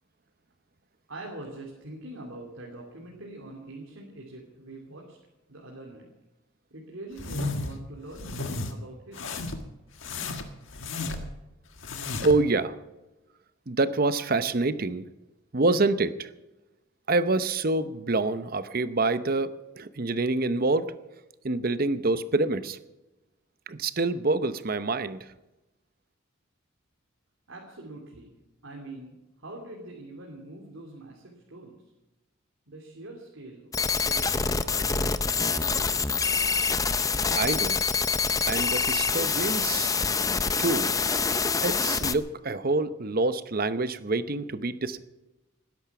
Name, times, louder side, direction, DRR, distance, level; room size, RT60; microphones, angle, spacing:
voice 1, 1.1-5.2 5.5-6.1 6.7-9.4 27.5-28.3 28.6-31.7 32.7-34.2 34.6-35.9, right 2 dB, 70° right, -1 dB, 2.8 m, -44 dB
sound 1, 7.2-7.8 8.1-8.7 9.1-9.7 10.0-11.4 11.8-12.4, left 3 dB, 65° left, 1.7 m, -33 dB
voice 2, 12.2-12.7 13.7-15.1 15.5-16.3 17.1-19.5 19.8-20.9 21.4-22.8 23.7-25.2 37.4-37.8 38.5-40.0 40.6-40.9 41.6-45.0, right 3 dB, 45° right, 13 dB, 0.8 m, -26 dB
sound 2, 33.7-42.1, left 5 dB, 15° left, 0.5 m, -26 dB
19.0 x 10.5 x 6.0 m, 1.0 s
head